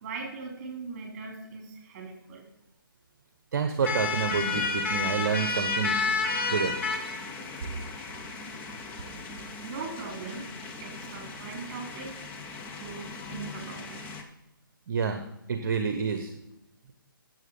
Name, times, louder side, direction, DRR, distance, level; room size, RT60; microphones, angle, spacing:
voice 1, 0.0-2.4 7.5-7.6 8.6-8.7 9.6-10.5 10.8-12.1 12.8-13.9, right 4 dB, 30° right, 2 dB, 3.1 m, -40 dB
voice 2, 3.5-6.0 6.5-6.8 14.9-16.3, right 6 dB, 50° right, 7 dB, 1.0 m, -28 dB
sound 1, 3.8-14.2, left 4 dB, 15° left, 0.8 m, -33 dB
9.3 x 7.4 x 5.4 m, 0.87 s
figure-of-eight pair, 150°, 12 cm